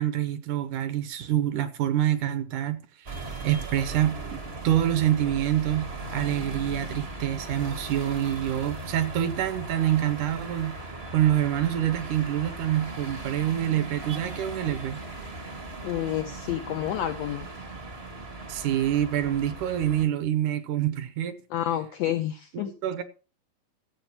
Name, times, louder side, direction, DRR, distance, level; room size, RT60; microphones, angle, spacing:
voice 1, 0.0-2.9 3.4-10.8 11.1-15.0 18.5-21.4 22.8-23.0, right 11 dB, 75° right, 2.1 m, -26 dB
sound 1, 3.1-20.1, right 2 dB, 45° right, 0.7 m, -38 dB
voice 2, 15.8-17.5 21.5-22.7, left 12 dB, 85° left, 1.5 m, -29 dB
14.5 x 7.7 x 4.4 m
omnidirectional pair, 3.9 m